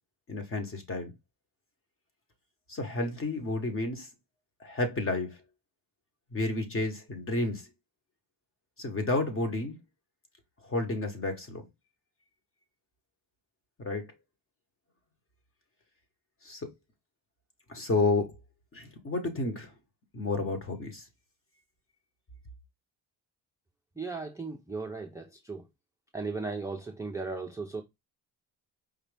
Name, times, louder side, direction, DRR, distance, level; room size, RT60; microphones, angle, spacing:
voice 1, 0.3-1.1 2.7-4.1 4.6-5.4 6.3-7.7 8.8-9.7 10.6-11.6 13.8-14.0 16.4-16.6 17.7-18.3 18.7-19.7 20.1-21.0, left 2 dB, 30° left, 1.1 m, -31 dB
voice 2, 24.0-25.6 26.1-27.8, right 3 dB, 10° right, 0.4 m, -36 dB
5.0 x 2.7 x 3.3 m
wide cardioid pair, 165°, 42 cm